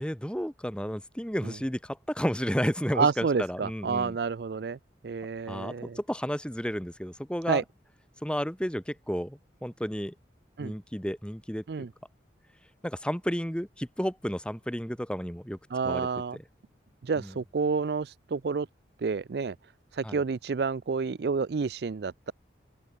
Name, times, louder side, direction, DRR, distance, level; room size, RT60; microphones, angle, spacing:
voice 1, 0.0-4.2 5.5-7.6 8.2-10.1 10.6-11.6 12.8-15.6 15.8-16.1 17.2-17.4 20.0-20.2, equal, 5° left, 2.7 m, -32 dB
voice 2, 3.0-4.8 5.0-6.0 7.5-7.6 10.6-10.7 11.7-11.9 15.7-16.4 17.0-18.7 19.0-19.5 20.0-22.3, right 5 dB, 65° right, 0.4 m, -29 dB
open air
head